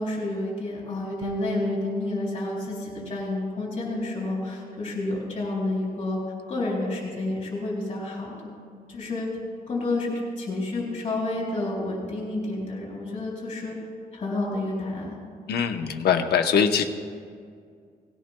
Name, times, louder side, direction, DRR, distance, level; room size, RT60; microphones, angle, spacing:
voice 1, 0.0-6.2 6.5-8.5 8.9-9.3 9.7-13.8 14.1-15.2, left 2 dB, 35° left, -3 dB, 3.8 m, -30 dB
Bass guitar, 1.2-10.8, left 1 dB, 30° right, 2.7 m, -39 dB
voice 2, 15.5-16.8, left 7 dB, 80° left, 5 dB, 0.9 m, -22 dB
18.5 x 16.5 x 2.2 m, 2.1 s
wide cardioid pair, 145°, 16 cm